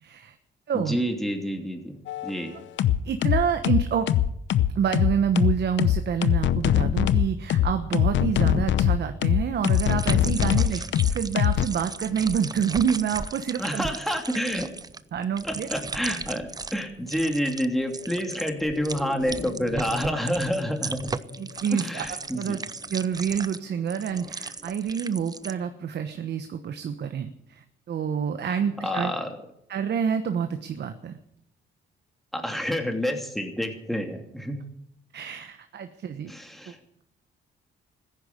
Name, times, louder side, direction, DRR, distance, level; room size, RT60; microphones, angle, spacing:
voice 1, 0.0-0.4 0.7-1.0 3.0-4.1 4.7-10.8 11.1-13.8 15.1-15.7 21.4-22.0 22.3-22.6 22.9-29.1 29.7-31.2 35.1-36.3, right 7 dB, 60° right, 8 dB, 1.2 m, -27 dB
voice 2, 0.7-2.0 2.2-2.5 13.6-14.7 15.4-21.1 21.7-22.6 28.4-28.6 28.8-29.4 32.3-34.6 36.3-36.8, equal, ahead, 4 dB, 3.0 m, -28 dB
sound 1, 2.1-2.3 2.8-11.7, left 11 dB, 70° left, 0.8 m, -22 dB
sound 2, 9.7-16.8 17.1-17.7 17.9-25.5, right 4 dB, 20° right, 0.6 m, -36 dB
sound 3, 14.9-24.6 25.0-25.1, left 4 dB, 45° left, 1.5 m, -43 dB
14.5 x 10.5 x 8.4 m, 0.75 s
cardioid pair, 90°, 20 cm